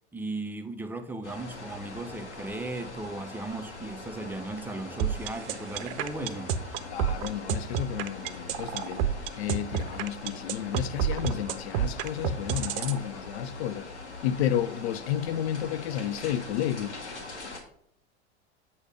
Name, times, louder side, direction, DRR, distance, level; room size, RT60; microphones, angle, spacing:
voice 1, 0.1-6.5, right 2 dB, 5° right, 0.5 m, -36 dB
sound 1, 1.2-17.6, left 3 dB, 85° left, 1.2 m, -42 dB
sound 2, 5.0-13.0, right 8 dB, 55° right, 0.5 m, -29 dB
voice 2, 6.9-9.0 9.4-13.9 14.2-17.0, left 10 dB, 70° left, 0.5 m, -31 dB
8.0 x 2.8 x 4.9 m
hypercardioid pair, 90°, 33 cm